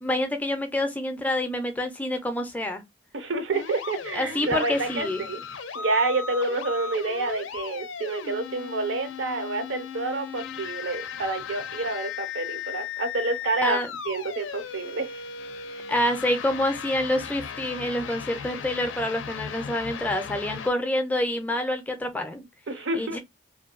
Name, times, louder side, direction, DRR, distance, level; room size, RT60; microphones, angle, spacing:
voice 1, 0.0-2.8 4.1-5.2 13.6-13.9 15.9-22.4 22.9-23.2, left 1 dB, 10° left, 0.4 m, -27 dB
voice 2, 3.1-5.4 5.7-13.8 14.1-15.3 15.7-15.9 22.7-23.2, right 3 dB, 80° right, 0.6 m, -28 dB
sound 1, 3.5-20.7, left 7 dB, 90° left, 0.4 m, -37 dB
2.6 x 2.2 x 2.4 m
head